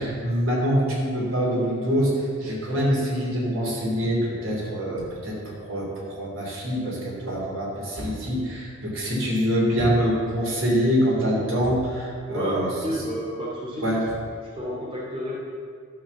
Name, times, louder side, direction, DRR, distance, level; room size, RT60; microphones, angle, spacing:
voice 1, 0.0-12.7 13.8-14.0, equal, 85° right, -4 dB, 3.1 m, -25 dB
voice 2, 12.2-14.0 14.5-15.4, equal, 25° right, -6 dB, 2.3 m, -30 dB
12.0 x 4.8 x 7.0 m, 2.1 s
head